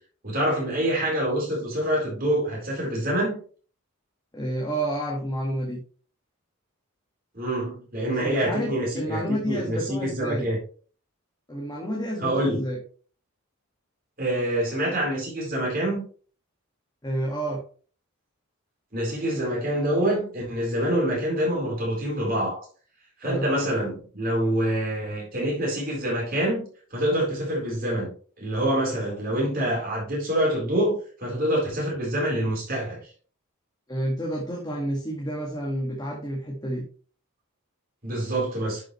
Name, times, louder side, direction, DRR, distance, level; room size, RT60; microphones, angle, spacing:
voice 1, 0.2-3.4 7.3-10.6 12.2-12.6 14.2-16.0 18.9-22.7 23.2-26.6 26.9-33.1 38.0-38.8, right 1 dB, 40° right, 4.0 m, -26 dB
voice 2, 4.3-5.8 8.1-10.5 11.5-12.8 17.0-17.6 23.2-23.5 33.9-36.9, right 1 dB, 20° left, 1.8 m, -30 dB
11.0 x 6.4 x 3.2 m
head